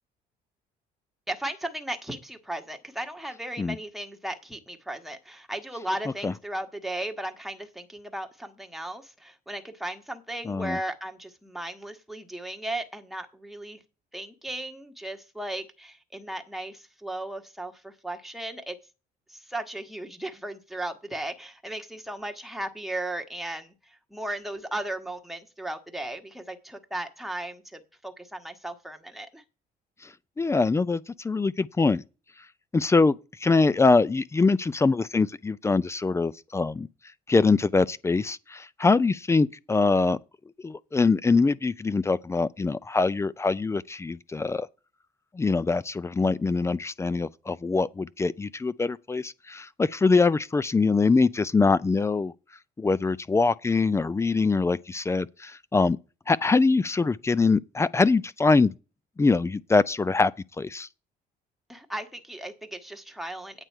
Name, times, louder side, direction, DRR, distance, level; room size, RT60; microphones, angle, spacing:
voice 1, 1.3-13.8 14.1-18.8 19.3-23.7 24.1-29.4 61.7-63.6, right 1 dB, ahead, 1.5 m, -36 dB
voice 2, 10.5-10.8 30.0-30.1 30.4-32.0 32.7-36.9 37.3-40.2 40.6-44.7 45.3-52.3 52.8-56.0 56.3-58.7 59.2-60.3 60.6-60.9, left 3 dB, 15° left, 0.4 m, -23 dB
9.1 x 8.0 x 4.5 m
cardioid pair, 110°, 17 cm